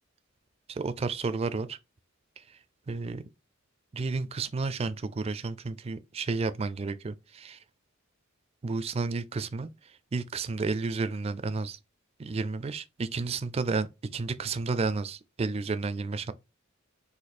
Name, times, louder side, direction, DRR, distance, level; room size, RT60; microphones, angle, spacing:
voice 1, 0.7-1.8 2.4-2.6 2.9-3.2 3.9-7.6 8.6-11.8 12.2-16.3, right 4 dB, 30° right, 0.3 m, -32 dB
4.1 x 2.7 x 4.2 m
head